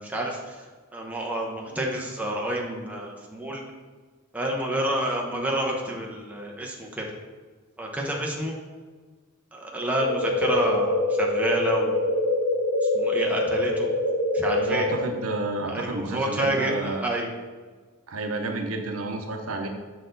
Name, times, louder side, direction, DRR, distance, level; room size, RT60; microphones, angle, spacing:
voice 1, 0.0-3.6 4.3-7.0 7.8-8.6 9.5-12.0 12.8-13.9 14.3-14.9 15.7-17.3, right 1 dB, 5° right, -1 dB, 0.7 m, -29 dB
sound 1, 10.0-15.0, left 2 dB, 70° left, 0.7 m, -24 dB
voice 2, 14.5-17.0 18.1-19.7, right 2 dB, 80° right, 4 dB, 0.7 m, -30 dB
6.5 x 4.1 x 3.9 m, 1.4 s
head